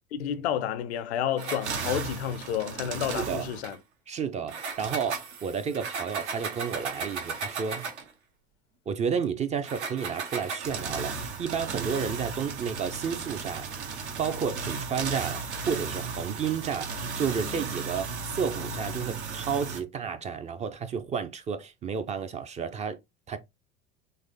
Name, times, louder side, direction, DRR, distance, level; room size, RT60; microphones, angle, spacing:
voice 1, 0.1-3.8, left 9 dB, 70° left, 0.5 m, -30 dB
sound 1, 1.4-3.8 4.5-8.1 9.6-19.8, right 4 dB, 80° right, 0.9 m, -35 dB
voice 2, 3.1-3.5 4.1-7.9 8.9-13.7 14.2-23.0 23.3-23.4, right 7 dB, 20° right, 0.3 m, -31 dB
3.9 x 2.9 x 2.6 m
hypercardioid pair, 75°, 34 cm